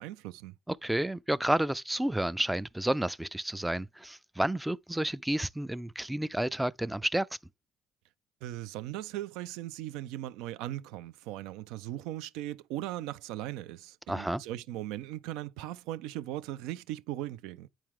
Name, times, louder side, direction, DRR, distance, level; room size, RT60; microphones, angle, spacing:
voice 1, 0.0-0.5 8.4-17.7, right 14 dB, 80° right, 0.4 m, -38 dB
voice 2, 0.7-7.3 14.1-14.4, right 1 dB, 5° right, 0.3 m, -30 dB
8.8 x 4.5 x 3.6 m
supercardioid pair, 70°, 0 cm